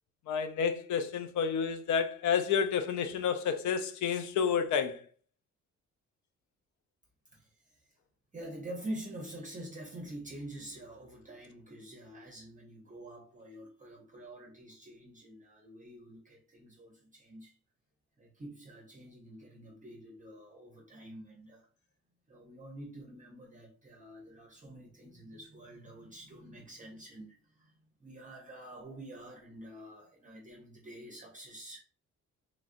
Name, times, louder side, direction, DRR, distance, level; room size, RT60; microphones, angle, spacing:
voice 1, 0.3-5.0, left 7 dB, 70° left, 0.5 m, -30 dB
voice 2, 7.3-7.8 8.3-17.5 18.2-21.7 22.3-27.7 28.0-31.8, right 1 dB, 25° right, 0.7 m, -47 dB
3.2 x 2.4 x 2.5 m
cardioid pair, 90°, 30 cm